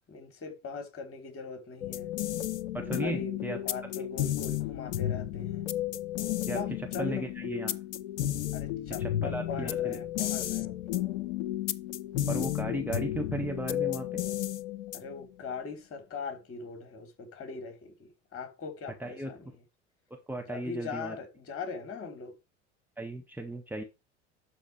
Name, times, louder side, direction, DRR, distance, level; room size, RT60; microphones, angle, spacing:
voice 1, 0.1-2.1 2.8-5.6 6.5-7.3 8.5-11.0 14.9-19.5 20.5-22.3, left 5 dB, 35° left, 3.5 m, -41 dB
sound 1, 1.8-15.3, left 13 dB, 70° left, 0.7 m, -33 dB
voice 2, 2.7-3.6 6.5-6.6 7.0-7.8 9.0-10.0 12.3-14.2 19.0-19.3 20.3-21.2 23.0-23.8, right 1 dB, 5° right, 1.5 m, -35 dB
12.0 x 4.5 x 4.5 m
figure-of-eight pair, 70°, 36 cm